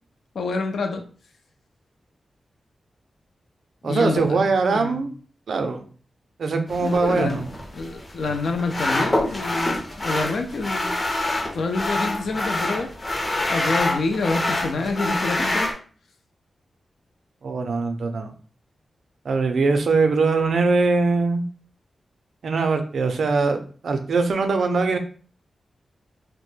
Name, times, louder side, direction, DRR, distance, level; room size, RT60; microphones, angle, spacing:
voice 1, 0.3-1.0 3.8-4.4 4.7-5.0 6.8-7.4 7.7-10.9 11.5-12.9 13.5-15.7, left 3 dB, 80° left, 5 dB, 0.4 m, -27 dB
voice 2, 3.8-5.1 5.5-5.9 6.4-7.5 17.4-18.3 19.3-21.4 22.4-25.0, right 4 dB, 75° right, 6 dB, 0.4 m, -22 dB
sound 1, 6.7-15.7, left 1 dB, 30° left, 0.5 m, -26 dB
2.2 x 2.0 x 3.1 m, 0.41 s
wide cardioid pair, 95°, 0 cm